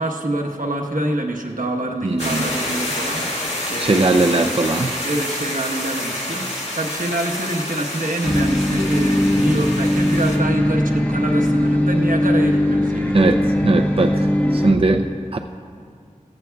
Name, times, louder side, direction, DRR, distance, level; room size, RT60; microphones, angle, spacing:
voice 1, 0.0-4.5 5.0-6.5 6.7-13.3, right 1 dB, 85° right, 1 dB, 1.2 m, -26 dB
voice 2, 2.0-2.5 3.8-4.9 13.1-15.1 15.3-15.4, right 2 dB, 45° right, 4 dB, 0.5 m, -19 dB
sound 1, 2.2-10.4, left 1 dB, 50° left, 2.0 m, -28 dB
sound 2, 8.2-14.7, left 1 dB, 10° left, 1.0 m, -19 dB
16.5 x 14.5 x 2.3 m, 2.3 s
wide cardioid pair, 40°, 14 cm